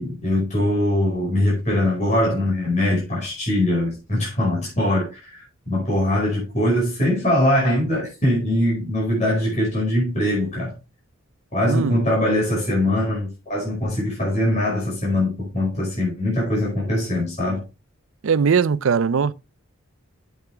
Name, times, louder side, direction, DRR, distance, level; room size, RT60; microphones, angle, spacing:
voice 1, 0.0-5.4 5.7-10.7 11.5-17.6, left 1 dB, 35° left, 5.2 m, -22 dB
voice 2, 18.2-19.3, right 6 dB, 65° right, 0.5 m, -20 dB
8.4 x 8.3 x 3.4 m
head